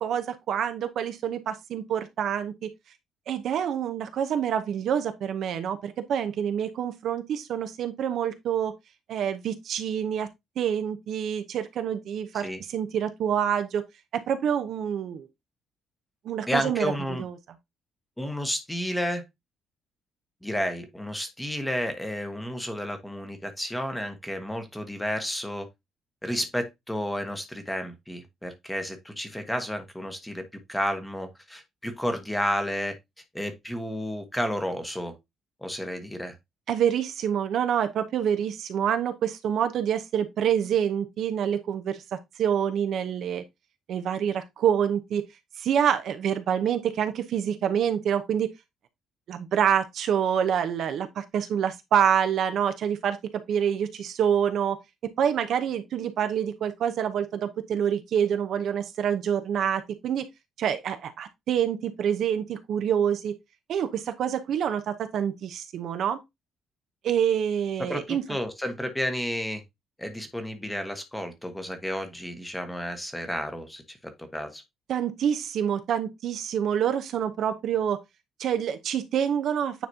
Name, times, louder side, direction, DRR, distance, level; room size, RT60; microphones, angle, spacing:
voice 1, 0.0-2.7 3.3-8.7 9.1-10.3 10.6-13.8 14.1-15.3 16.2-17.3 36.7-43.4 43.9-45.2 45.6-48.5 49.3-53.2 53.5-60.3 60.6-63.3 63.7-66.2 67.0-68.2 74.9-78.0 78.4-79.9, right 8 dB, 55° right, 0.8 m, -27 dB
voice 2, 16.5-17.2 18.2-19.2 20.4-25.7 26.2-30.4 30.7-32.9 33.3-35.1 35.6-36.4 67.9-69.6 70.0-74.6, equal, 5° left, 1.1 m, -31 dB
9.3 x 4.1 x 2.8 m
cardioid pair, 160°, 0 cm